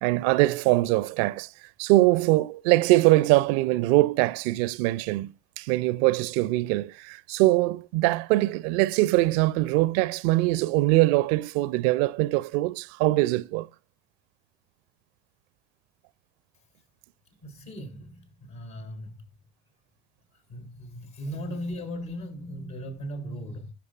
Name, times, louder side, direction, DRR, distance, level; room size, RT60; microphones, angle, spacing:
voice 1, 0.0-1.5 1.8-13.7, right 19 dB, 65° right, 0.5 m, -22 dB
voice 2, 17.4-19.2 20.5-23.7, equal, 60° left, 3.6 m, -37 dB
17.0 x 6.7 x 2.4 m
figure-of-eight pair, 50°, 32 cm